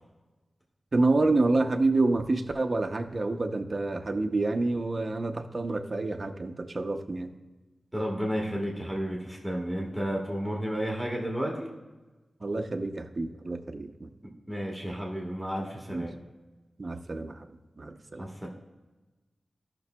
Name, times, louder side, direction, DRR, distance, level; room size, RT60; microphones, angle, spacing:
voice 1, 0.9-7.3 12.4-14.1 15.9-16.1 16.8-17.5 17.8-18.3, right 2 dB, 40° right, 5 dB, 0.6 m, -28 dB
voice 2, 7.9-11.7 14.5-16.1 18.2-18.5, equal, ahead, -2 dB, 1.4 m, -32 dB
15.0 x 5.9 x 2.2 m, 1.2 s
wide cardioid pair, 125°, 0 cm